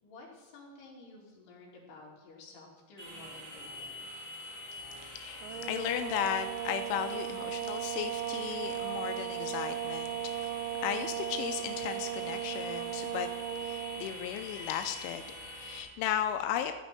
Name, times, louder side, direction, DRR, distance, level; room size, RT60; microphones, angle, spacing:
voice 1, 0.0-4.1, left 3 dB, 55° left, -4 dB, 4.5 m, -52 dB
sound 1, 3.0-15.8, left 1 dB, 35° right, 0.5 m, -45 dB
voice 2, 5.0-16.8, left 10 dB, 85° left, 8 dB, 2.8 m, -36 dB
sound 2, 5.4-14.1, right 12 dB, 85° right, 3.3 m, -37 dB
15.5 x 5.2 x 9.0 m, 1.3 s
omnidirectional pair, 5.9 m